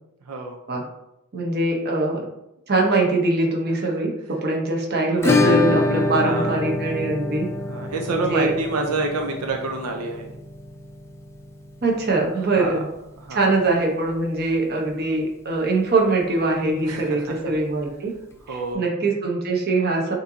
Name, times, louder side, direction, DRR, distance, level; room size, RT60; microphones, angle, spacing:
voice 1, 0.3-0.6 6.2-6.6 7.7-10.3 12.6-12.8 13.2-13.5 16.8-17.4 18.5-18.9, right 2 dB, 90° right, 2 dB, 0.6 m, -27 dB
voice 2, 1.3-2.2 2.7-4.1 4.4-7.5 8.1-8.5 11.8-12.9 13.3-18.1 18.5-20.1, right 2 dB, 45° right, -1 dB, 0.9 m, -22 dB
Acoustic guitar / Strum, 5.2-13.8 14.1-14.2 14.5-14.6 14.9-15.0 17.1-17.2 18.3-18.4, left 2 dB, 10° left, 0.5 m, -26 dB
6.6 x 2.7 x 2.8 m, 0.88 s
head